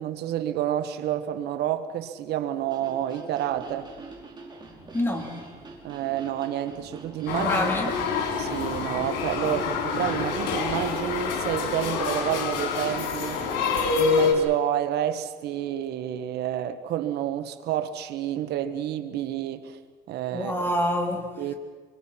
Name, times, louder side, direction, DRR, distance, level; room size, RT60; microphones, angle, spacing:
voice 1, 0.0-3.9 5.8-7.7 8.4-13.4 13.9-19.8 20.1-20.5 21.4-21.5, right 11 dB, 75° right, 11 dB, 1.3 m, -29 dB
sound 1, 2.6-11.1, right 3 dB, 25° right, 5.1 m, -44 dB
voice 2, 4.9-5.4 7.3-7.9 20.3-21.3, left 1 dB, 15° left, 2 dB, 3.6 m, -26 dB
sound 2, 7.3-14.3, left 5 dB, 85° left, 4.7 m, -27 dB
26.5 x 23.5 x 5.8 m, 1.5 s
cardioid pair, 110°, 17 cm